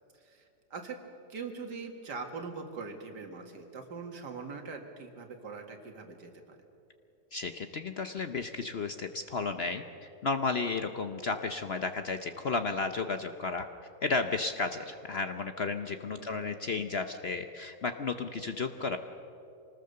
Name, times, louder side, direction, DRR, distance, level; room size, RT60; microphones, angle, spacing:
voice 1, 0.1-1.0 1.3-6.6 16.2-16.4, right 4 dB, 80° right, 4 dB, 2.5 m, -42 dB
voice 2, 7.3-13.7 14.0-19.0, left 4 dB, 50° left, 8 dB, 0.8 m, -33 dB
24.5 x 19.5 x 6.8 m, 2.8 s
omnidirectional pair, 1.8 m